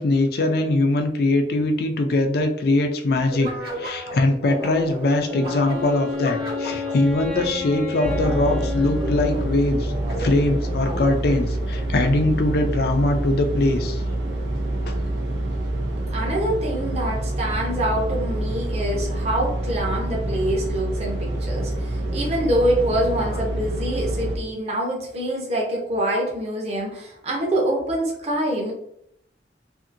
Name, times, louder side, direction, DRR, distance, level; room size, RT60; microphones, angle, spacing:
voice 1, 0.0-3.5 3.8-9.9 10.2-14.0 14.9-15.0, left 2 dB, 60° left, 5 dB, 0.4 m, -21 dB
sound 1, 3.3-11.4, equal, 60° right, 1.3 m, -34 dB
Wind instrument woodwind instrument, 5.2-10.0, left 4 dB, ahead, 0.6 m, -32 dB
sound 2, 8.0-24.4, right 1 dB, 90° right, 0.7 m, -27 dB
voice 2, 16.1-28.7, right 1 dB, 35° right, -2 dB, 0.7 m, -25 dB
2.8 x 2.7 x 2.5 m, 0.76 s
head